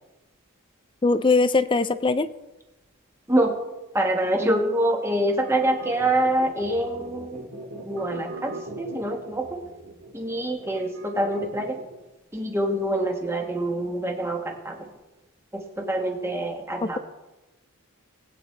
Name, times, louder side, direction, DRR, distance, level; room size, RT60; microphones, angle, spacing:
voice 1, 1.0-2.3 16.8-17.0, left 3 dB, 20° left, 13 dB, 0.4 m, -21 dB
voice 2, 3.9-7.4 7.8-9.6 10.1-11.8 12.3-14.9 15.5-17.0, right 1 dB, 10° right, 2 dB, 1.5 m, -25 dB
sound 1, 5.3-12.0, right 2 dB, 80° right, 2.2 m, -40 dB
20.5 x 9.0 x 3.3 m, 1.0 s
head